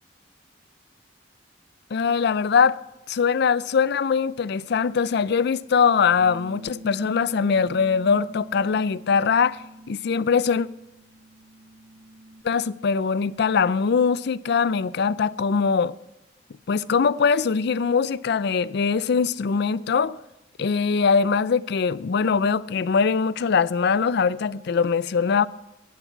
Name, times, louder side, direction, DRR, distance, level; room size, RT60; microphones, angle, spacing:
voice 1, 1.9-2.8 3.1-9.6 9.9-10.7 12.4-15.9 16.7-20.2 20.6-25.5, left 5 dB, 60° left, 0.4 m, -22 dB
Bass guitar, 6.2-12.4, right 1 dB, 75° right, 1.1 m, -45 dB
15.5 x 11.0 x 4.6 m
head